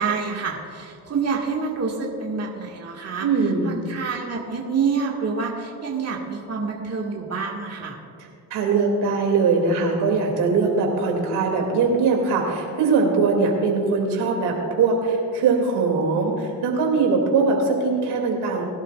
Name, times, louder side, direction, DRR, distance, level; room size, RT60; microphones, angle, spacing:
voice 1, 0.0-8.0, right 5 dB, 40° right, -2 dB, 2.0 m, -27 dB
voice 2, 3.2-3.7 8.5-18.6, right 4 dB, 75° right, 1 dB, 2.8 m, -21 dB
22.5 x 11.5 x 2.5 m, 2.4 s
cardioid pair, 85°, 39 cm